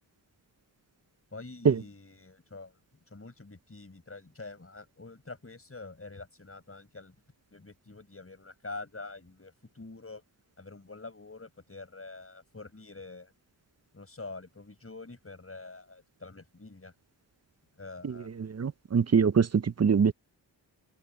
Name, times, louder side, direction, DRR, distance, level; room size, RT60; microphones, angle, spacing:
voice 1, 1.3-2.8 3.1-7.1 7.5-10.2 10.6-13.3 13.9-16.9 17.8-18.3, left 3 dB, 30° left, 6.6 m, -46 dB
voice 2, 18.6-19.5 19.8-20.1, right 6 dB, 35° right, 0.6 m, -22 dB
wide cardioid pair, 100°, 44 cm